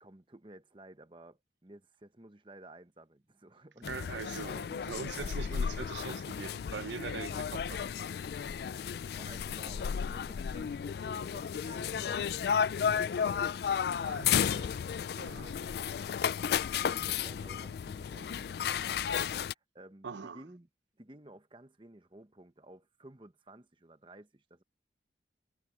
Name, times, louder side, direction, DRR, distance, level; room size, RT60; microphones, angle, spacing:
voice 1, 0.0-3.9 4.6-4.8 5.1-5.4 7.1-7.5 9.1-13.6 14.4-14.7 15.4-16.2 16.7-20.7 21.0-24.6, right 1 dB, 25° right, 1.1 m, -54 dB
sound 1, 3.8-19.5, left 7 dB, 60° left, 0.3 m, -33 dB
voice 2, 3.9-7.8 13.8-14.6 15.2-15.6 20.0-20.4, right 5 dB, 80° right, 0.6 m, -42 dB
head